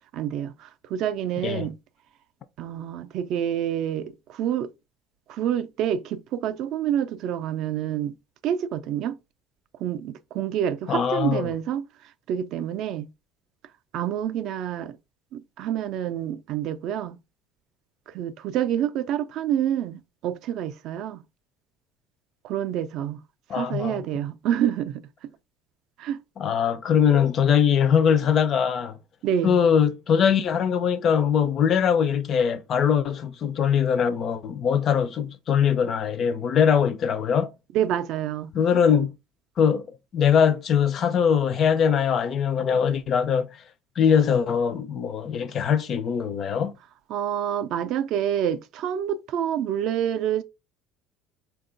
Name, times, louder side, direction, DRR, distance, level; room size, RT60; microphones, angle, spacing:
voice 1, 0.1-1.8 2.6-4.7 5.3-8.1 8.4-9.2 9.8-11.9 12.3-13.1 13.9-15.0 15.3-17.2 18.1-21.2 22.4-23.2 23.5-25.1 26.0-26.2 29.2-29.6 37.7-38.5 47.1-50.4, right 10 dB, 50° right, 0.3 m, -27 dB
voice 2, 10.9-11.5 23.5-24.0 26.4-29.0 29.4-37.5 38.5-39.1 39.6-39.9 40.1-43.5 44.0-46.7, left 7 dB, 35° left, 0.3 m, -22 dB
4.3 x 2.3 x 3.7 m
cardioid pair, 175°, 0 cm